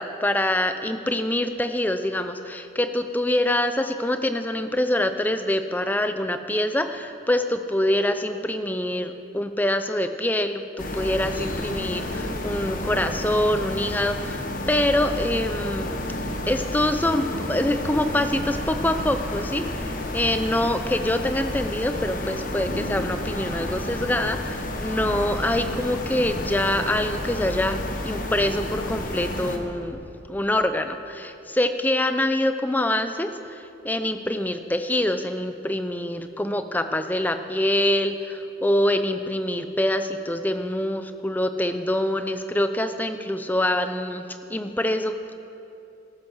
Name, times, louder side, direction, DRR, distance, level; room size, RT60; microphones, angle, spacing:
voice 1, 0.0-10.6 10.9-14.4 14.7-15.9 16.5-30.0 30.3-44.2 44.5-45.3, left 1 dB, 10° left, 9 dB, 0.5 m, -25 dB
sound 1, 10.8-29.6, left 1 dB, 45° left, 1.2 m, -31 dB
14.0 x 12.5 x 6.3 m, 2.8 s
head